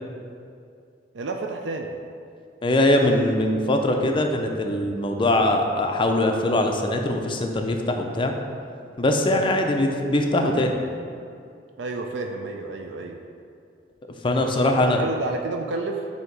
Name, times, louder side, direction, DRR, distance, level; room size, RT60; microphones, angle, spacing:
voice 1, 1.1-1.9 9.2-9.6 11.8-13.2 14.4-16.1, right 3 dB, 80° right, 3 dB, 0.4 m, -31 dB
voice 2, 2.6-8.3 9.0-10.7 14.2-15.0, left 1 dB, 30° left, 3 dB, 0.5 m, -22 dB
7.7 x 2.8 x 4.6 m, 2.4 s
head